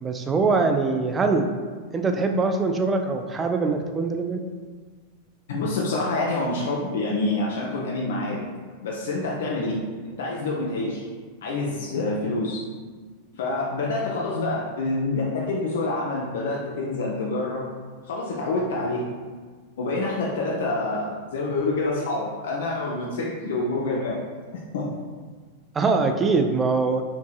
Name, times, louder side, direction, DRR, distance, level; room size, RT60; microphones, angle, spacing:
voice 1, 0.0-1.5 1.9-4.4 25.7-27.0, right 4 dB, 20° right, 5 dB, 0.3 m, -23 dB
voice 2, 5.5-8.4 8.8-11.0 11.4-12.6 13.3-17.7 18.0-19.1 19.8-24.2 24.7-24.9, left 2 dB, 60° left, -3 dB, 0.4 m, -27 dB
4.4 x 2.7 x 2.3 m, 1.5 s
figure-of-eight pair, 90°, 0 cm